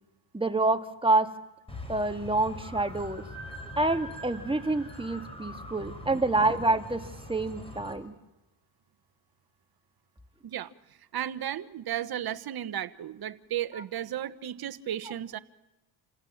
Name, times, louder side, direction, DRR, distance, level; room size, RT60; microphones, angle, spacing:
voice 1, 0.3-1.3 1.9-3.2 3.8-8.1 13.8-13.9, right 2 dB, 10° right, 1.8 m, -27 dB
sound 1, 1.7-7.9, left 1 dB, 10° left, 5.9 m, -43 dB
voice 2, 11.1-15.4, right 11 dB, 50° right, 1.2 m, -34 dB
28.0 x 16.5 x 7.3 m
supercardioid pair, 80°, 48 cm